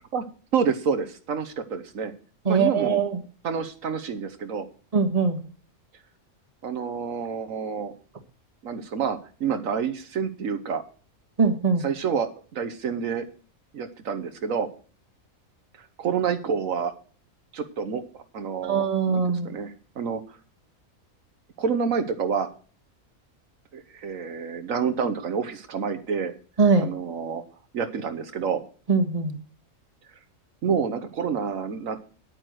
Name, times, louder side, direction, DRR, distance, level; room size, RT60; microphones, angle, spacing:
voice 1, 0.5-2.1 2.4-3.0 3.4-4.7 6.6-7.9 8.6-10.8 11.8-13.3 13.7-14.7 16.0-16.9 17.5-18.0 18.3-20.2 21.6-22.5 23.7-26.3 26.8-27.4 27.7-28.6 30.6-32.0, right 6 dB, 80° right, 9 dB, 1.4 m, -28 dB
voice 2, 2.4-3.1 4.9-5.4 11.4-11.8 18.7-19.5 26.6-26.9 28.9-29.3, right 5 dB, 30° right, 6 dB, 1.4 m, -21 dB
9.6 x 9.2 x 6.3 m, 0.41 s
omnidirectional pair, 1.4 m